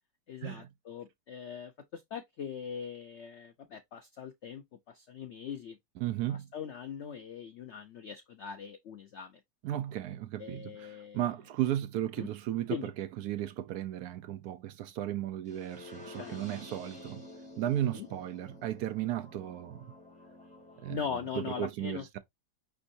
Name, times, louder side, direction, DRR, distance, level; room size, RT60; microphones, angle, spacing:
voice 1, 0.3-5.8 6.3-9.4 10.4-11.2 12.2-12.3 12.7-12.9 16.2-16.4 17.9-18.1 20.9-22.2, left 7 dB, 80° left, 0.6 m, -41 dB
voice 2, 6.0-6.5 9.6-17.3 17.6-19.9 20.8-22.2, right 12 dB, 70° right, 1.0 m, -35 dB
sound 1, 15.5-21.4, left 2 dB, 5° left, 2.5 m, -50 dB
5.3 x 3.4 x 2.6 m
omnidirectional pair, 1.8 m